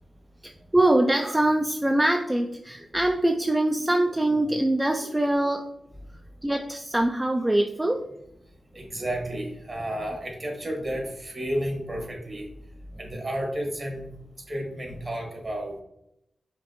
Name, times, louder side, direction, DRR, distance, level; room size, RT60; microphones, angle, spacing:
voice 1, 0.4-5.6 6.4-8.1, right 1 dB, 15° right, 4 dB, 0.3 m, -23 dB
voice 2, 8.7-12.5 13.0-14.0 14.5-15.8, right 1 dB, 45° right, 1 dB, 1.4 m, -31 dB
5.1 x 2.6 x 3.0 m, 0.81 s
cardioid pair, 55°, 0 cm